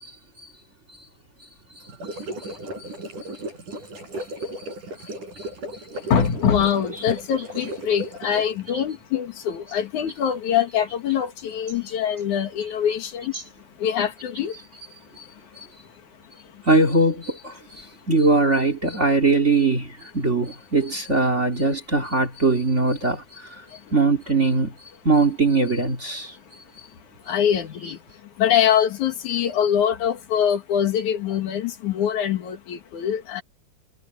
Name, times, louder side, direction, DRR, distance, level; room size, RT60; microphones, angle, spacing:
sound 1, 1.8-8.6, right 1 dB, 80° right, 6.8 m, -35 dB
voice 1, 6.0-14.7 15.1-16.0 16.3-16.7 17.8-17.9 23.7-23.9 26.3-26.6 27.2-33.4, left 9 dB, 70° left, 3.1 m, -24 dB
voice 2, 16.7-17.5 18.1-19.9 20.1-23.2 23.9-24.7 25.0-26.3 27.8-27.9, right 3 dB, 25° right, 2.5 m, -20 dB
omnidirectional pair, 3.6 m